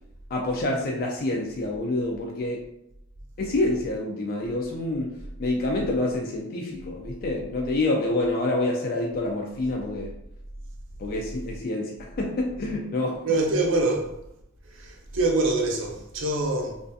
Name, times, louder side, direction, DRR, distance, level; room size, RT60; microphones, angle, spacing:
voice 1, 0.3-2.6 3.4-10.1 11.0-13.2, left 2 dB, 45° left, 0.3 m, -27 dB
voice 2, 13.2-14.2 14.6-16.8, right 2 dB, 65° right, 0.5 m, -25 dB
2.5 x 2.3 x 2.5 m
head